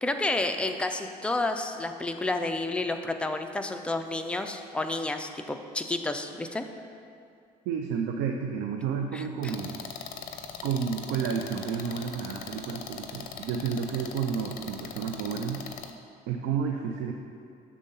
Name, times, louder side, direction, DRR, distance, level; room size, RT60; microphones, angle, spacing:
voice 1, 0.0-6.6 9.1-9.5, left 2 dB, 5° left, 5 dB, 0.4 m, -30 dB
voice 2, 7.7-9.8 10.6-15.6 16.3-17.1, right 6 dB, 90° right, 3 dB, 0.4 m, -31 dB
sound 1, 9.4-15.9, left 7 dB, 55° left, 0.5 m, -40 dB
6.9 x 3.7 x 5.3 m, 2.3 s
cardioid pair, 110°, 17 cm